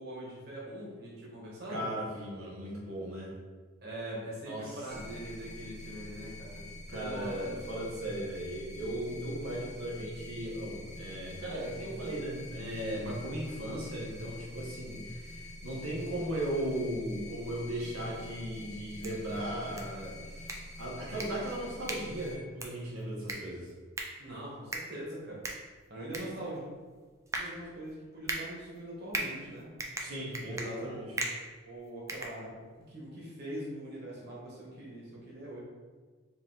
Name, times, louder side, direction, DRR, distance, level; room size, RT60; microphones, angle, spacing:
voice 1, 0.0-1.9 3.8-7.6 24.2-25.4 25.9-26.6 27.3-29.7 30.4-31.3 31.6-35.6, right 1 dB, 50° right, -6 dB, 1.1 m, -42 dB
voice 2, 1.7-3.3 4.5-4.8 6.9-20.5 20.8-23.7 30.0-31.1, right 1 dB, 90° right, -4 dB, 1.2 m, -37 dB
sound 1, 4.9-22.3, left 1 dB, 5° left, 0.8 m, -46 dB
sound 2, 18.8-32.9, right 2 dB, 15° right, 0.4 m, -41 dB
4.5 x 2.6 x 3.8 m, 1.5 s
head